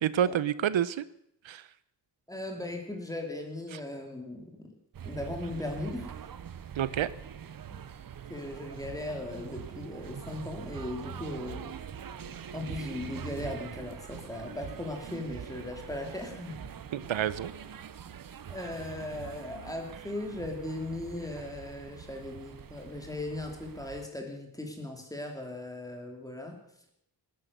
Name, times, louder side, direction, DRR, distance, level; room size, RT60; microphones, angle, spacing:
voice 1, 0.0-1.0 1.4-1.6 3.7-3.8 6.8-7.1 16.9-17.5, right 10 dB, 90° right, 17 dB, 0.8 m, -28 dB
voice 2, 2.3-4.7 5.0-6.3 7.7-7.8 8.3-11.7 12.5-16.7 18.5-26.6, left 1 dB, 10° left, 2 dB, 2.8 m, -38 dB
sound 1, 4.9-24.1, right 8 dB, 50° right, 0.7 m, -44 dB
19.0 x 10.5 x 6.7 m, 0.74 s
wide cardioid pair, 170°, 45 cm